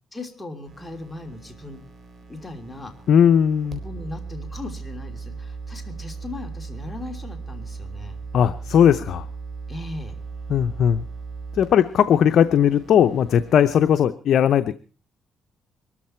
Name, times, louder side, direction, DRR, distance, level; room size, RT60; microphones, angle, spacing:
voice 1, 0.1-1.8 2.3-2.9 3.8-8.2 9.7-10.2, left 2 dB, 10° left, 3 dB, 3.1 m, -37 dB
sound 1, 0.7-14.0, right 4 dB, 55° right, 3.9 m, -38 dB
voice 2, 3.1-3.8 8.3-9.2 10.5-11.0 11.5-14.7, left 9 dB, 70° left, 10 dB, 0.7 m, -18 dB
22.5 x 13.5 x 4.5 m, 0.39 s
cardioid pair, 90°, 0 cm